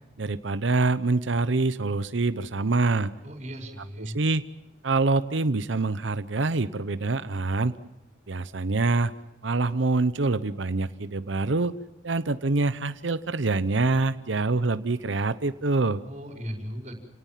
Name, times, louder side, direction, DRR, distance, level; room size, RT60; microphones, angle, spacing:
voice 1, 0.2-3.1 4.0-4.4 4.8-7.8 8.3-9.1 9.4-11.7 12.0-16.0, right 3 dB, 80° right, 13 dB, 0.8 m, -25 dB
voice 2, 3.2-4.2 16.0-16.9, equal, 35° right, 4 dB, 5.2 m, -37 dB
29.0 x 18.5 x 7.4 m, 1.0 s
head